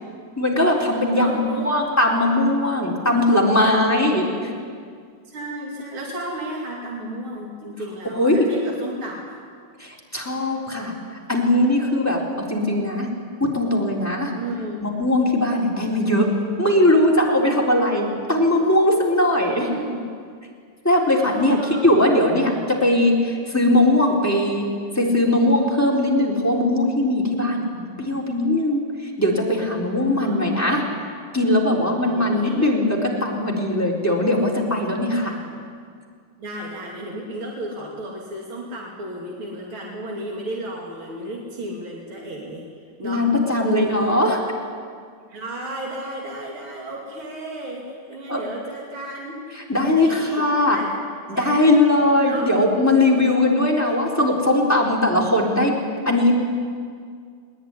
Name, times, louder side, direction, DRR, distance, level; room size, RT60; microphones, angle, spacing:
voice 1, 0.4-4.3 8.1-8.5 9.8-10.9 11.3-12.2 12.5-13.1 13.4-14.3 14.8-16.3 16.6-19.7 20.8-21.6 21.8-22.5 22.8-24.6 25.0-28.8 29.2-30.8 31.3-35.3 43.0-44.4 48.3-48.4 49.7-50.8 51.3-55.7 56.0-56.3, left 1 dB, 5° left, -2 dB, 3.9 m, -19 dB
voice 2, 1.1-1.7 4.1-4.4 5.3-9.4 14.4-14.9 19.5-20.1 21.2-22.0 22.4-22.6 30.2-30.8 32.1-32.7 35.2-35.6 36.4-42.7 43.0-43.3 43.6-44.3 45.3-49.4 49.8-50.9 51.3-52.5 53.4-53.6 53.9-54.3, right 1 dB, 85° right, -2 dB, 3.6 m, -33 dB
21.5 x 20.0 x 9.9 m, 2.1 s
omnidirectional pair, 2.2 m